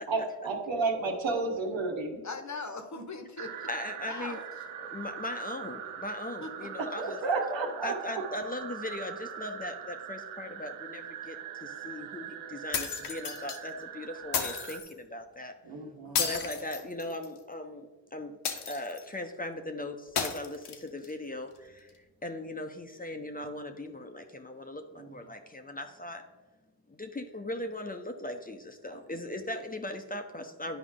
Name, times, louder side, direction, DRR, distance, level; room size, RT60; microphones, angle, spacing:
voice 1, 0.1-2.2 7.0-8.2 15.6-16.2 25.0-25.1 28.9-29.0, right 3 dB, 70° right, 2 dB, 1.6 m, -31 dB
voice 2, 2.2-3.7 4.1-4.4 6.4-6.7 16.0-16.2, left 3 dB, 35° left, 6 dB, 1.2 m, -40 dB
sound 1, 3.4-14.8, right 9 dB, 90° right, 0.7 m, -42 dB
voice 3, 3.7-4.4 4.8-7.2 7.8-15.5 16.1-18.4 18.7-21.9 22.2-26.2 26.9-30.8, left 1 dB, 20° left, 5 dB, 0.9 m, -39 dB
sound 2, 12.7-13.6 14.3-14.9 16.1-17.4 18.4-19.1 20.2-21.1, left 6 dB, 55° left, 1.2 m, -33 dB
10.0 x 4.9 x 3.8 m, 1.2 s
supercardioid pair, 50°, 47 cm